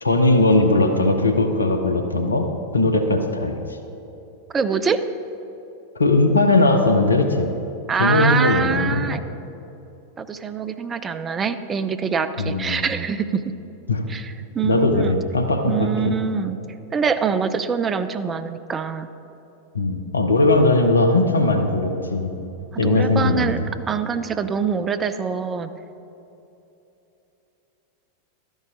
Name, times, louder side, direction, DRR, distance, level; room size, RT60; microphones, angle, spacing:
voice 1, 0.0-2.5 2.7-3.6 6.0-7.5 8.0-9.1 12.4-12.8 13.9-14.0 14.6-16.1 19.7-22.3 22.8-23.6, left 2 dB, 75° left, 5 dB, 0.8 m, -19 dB
voice 2, 4.5-5.0 7.9-9.2 10.2-13.4 14.1-15.2 15.7-16.6 16.9-19.1 22.8-25.7, right 6 dB, 20° right, 11 dB, 0.5 m, -24 dB
12.5 x 10.5 x 3.8 m, 2.9 s
figure-of-eight pair, 90°, 0 cm